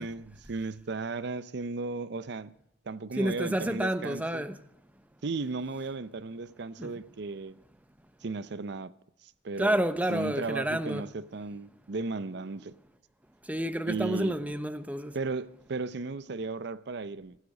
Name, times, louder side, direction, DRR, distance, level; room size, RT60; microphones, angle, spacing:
voice 1, 0.0-2.5 2.9-4.5 5.2-7.6 8.2-8.9 9.2-9.8 10.1-12.7 13.9-14.3 15.1-17.4, right 3 dB, 60° right, 0.6 m, -35 dB
voice 2, 3.2-4.6 6.8-6.9 9.6-11.1 13.5-15.1, right 1 dB, 10° right, 0.8 m, -29 dB
16.5 x 16.0 x 4.9 m
head